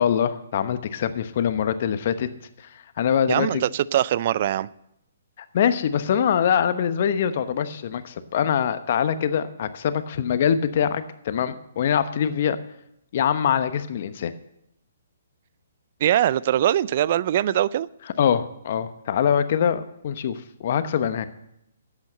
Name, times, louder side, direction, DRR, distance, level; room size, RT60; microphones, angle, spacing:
voice 1, 0.0-2.3 3.0-3.6 5.5-12.6 13.1-14.3 18.2-21.3, left 8 dB, 50° left, 1.0 m, -23 dB
voice 2, 3.3-4.7 16.0-17.9, right 11 dB, 45° right, 0.4 m, -22 dB
11.5 x 8.4 x 7.8 m
hypercardioid pair, 135°, 0 cm